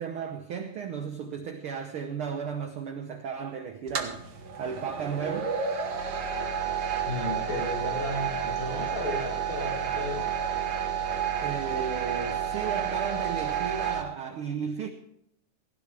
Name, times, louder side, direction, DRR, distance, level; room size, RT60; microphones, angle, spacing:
voice 1, 0.0-4.2 4.6-5.5 11.4-14.9, right 6 dB, 65° right, 1.4 m, -34 dB
sound 1, 3.9-14.0, right 7 dB, 50° right, 1.6 m, -30 dB
voice 2, 7.0-10.3, left 1 dB, 40° left, 6.7 m, -34 dB
17.5 x 16.0 x 3.4 m
omnidirectional pair, 3.5 m